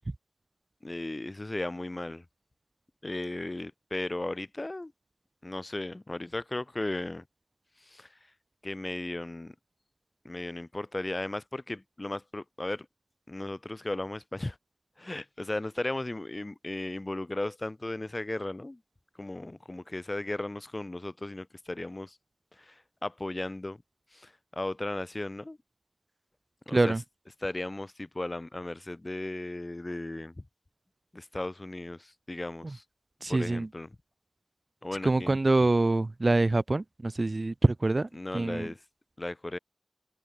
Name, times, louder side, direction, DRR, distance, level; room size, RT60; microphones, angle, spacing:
voice 1, 0.8-2.2 3.0-4.9 5.4-7.2 7.8-8.2 8.6-9.5 10.2-12.9 13.3-14.6 15.0-18.8 19.1-22.2 22.5-23.8 24.1-25.6 26.7-27.0 27.4-30.4 31.1-32.8 33.3-34.0 34.8-35.3 38.1-38.8 39.2-39.6, left 2 dB, 35° left, 4.6 m, -36 dB
voice 2, 33.2-33.7 35.0-38.1 38.3-38.7, right 2 dB, 50° right, 1.2 m, -25 dB
wide cardioid pair, 50°, 0 cm